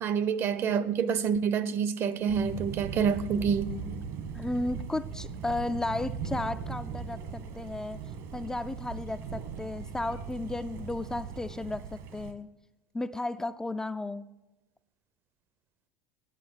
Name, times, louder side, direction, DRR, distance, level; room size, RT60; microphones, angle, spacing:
voice 1, 0.0-3.7, right 7 dB, 45° right, 0.7 m, -27 dB
Thunder, 2.3-12.3, right 6 dB, 60° right, 1.5 m, -39 dB
voice 2, 4.3-8.0 8.3-12.5 12.9-14.3, left 2 dB, 10° left, 0.3 m, -34 dB
10.5 x 9.1 x 7.8 m
supercardioid pair, 110°, 6 cm